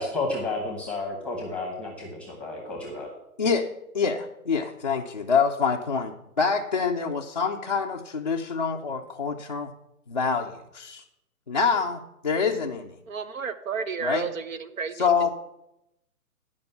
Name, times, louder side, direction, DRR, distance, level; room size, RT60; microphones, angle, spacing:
voice 1, 0.0-3.1, left 2 dB, 5° left, 1 dB, 1.0 m, -31 dB
voice 2, 3.9-9.7 10.1-11.0 11.5-13.0 14.0-14.3 15.0-15.3, left 5 dB, 30° left, -2 dB, 0.4 m, -26 dB
voice 3, 13.1-15.3, right 6 dB, 60° right, 11 dB, 1.1 m, -32 dB
11.0 x 5.2 x 6.9 m, 0.86 s
figure-of-eight pair, 140°, 45 cm